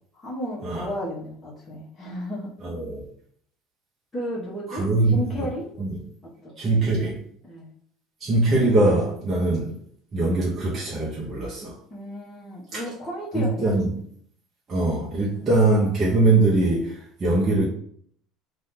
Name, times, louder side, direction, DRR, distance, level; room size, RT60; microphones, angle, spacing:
voice 1, 0.1-2.5 4.1-5.6 6.4-6.5 7.4-7.7 11.9-13.9 15.3-15.5, equal, 20° left, 1.1 m, -33 dB
voice 2, 2.6-3.1 4.7-5.5 5.8-6.0 6.6-7.2 8.2-9.8 10.1-11.8 12.7-12.8 13.3-14.0 14.7-17.7, right 2 dB, 35° right, 0.8 m, -22 dB
2.7 x 2.5 x 3.7 m
supercardioid pair, 105°, 0 cm